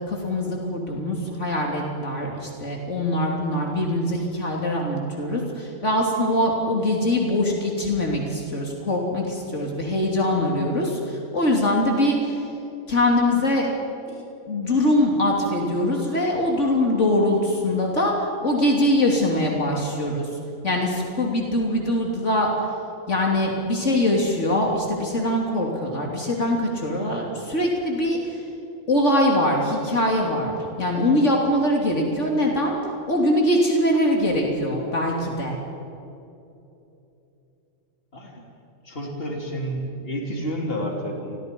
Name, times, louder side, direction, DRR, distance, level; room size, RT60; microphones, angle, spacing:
voice 1, 0.1-12.5 12.9-13.7 14.1-20.3 20.6-22.5 23.1-28.4 28.9-32.8 33.1-35.6, left 1 dB, 70° left, -1 dB, 3.4 m, -23 dB
voice 2, 38.1-38.5 38.8-41.4, equal, 50° left, 0 dB, 3.7 m, -30 dB
29.5 x 23.0 x 5.4 m, 2.8 s
omnidirectional pair, 1.3 m